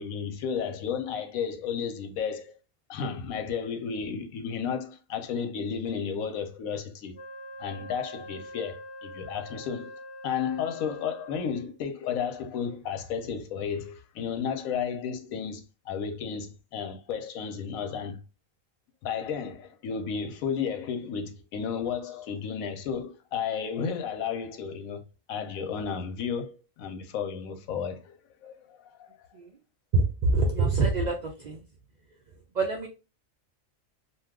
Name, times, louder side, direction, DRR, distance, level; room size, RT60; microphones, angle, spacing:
voice 1, 0.0-2.5 2.9-7.1 7.6-9.9 10.2-18.2 19.0-25.0 25.3-28.1 28.4-29.3, left 7 dB, 90° left, 1.0 m, -33 dB
Wind instrument woodwind instrument, 7.1-11.8, left 1 dB, 65° left, 0.9 m, -44 dB
voice 2, 29.9-31.6 32.5-32.9, right 3 dB, 80° right, 0.4 m, -25 dB
2.7 x 2.3 x 3.5 m
omnidirectional pair, 1.4 m